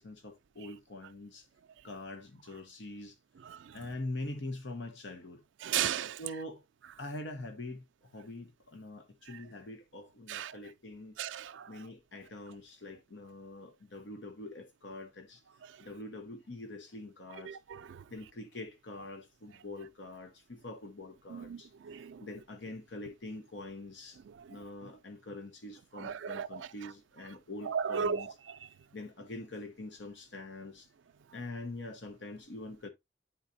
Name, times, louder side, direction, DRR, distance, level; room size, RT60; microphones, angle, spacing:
voice 1, 0.0-1.5 1.8-3.2 3.7-5.4 6.2-6.6 7.0-11.1 11.7-15.4 15.8-17.6 18.1-21.7 22.0-24.2 24.5-28.4 28.9-30.9 31.3-32.9, left 2 dB, 75° left, 0.9 m, -44 dB
voice 2, 5.6-6.2 10.3-10.5 11.2-11.6 17.5-17.8 21.3-21.6 21.9-22.2 26.0-26.5 27.7-28.2, right 8 dB, 85° right, 0.4 m, -34 dB
9.5 x 3.9 x 2.6 m
head